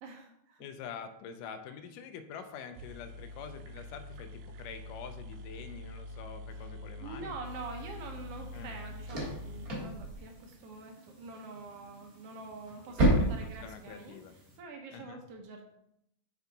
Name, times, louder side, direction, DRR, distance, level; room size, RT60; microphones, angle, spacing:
voice 1, 0.0-0.6 7.0-14.2 14.6-15.7, right 3 dB, 70° right, 3 dB, 1.5 m, -45 dB
voice 2, 0.6-7.4 8.5-8.8 13.1-14.3 14.9-15.2, left 7 dB, 90° left, 8 dB, 2.3 m, -46 dB
sound 1, 2.7-10.6, left 1 dB, 90° right, 2.1 m, -45 dB
sound 2, 7.4-14.6, right 1 dB, 35° right, 1.7 m, -34 dB
7.0 x 5.6 x 4.0 m, 0.78 s
omnidirectional pair, 3.6 m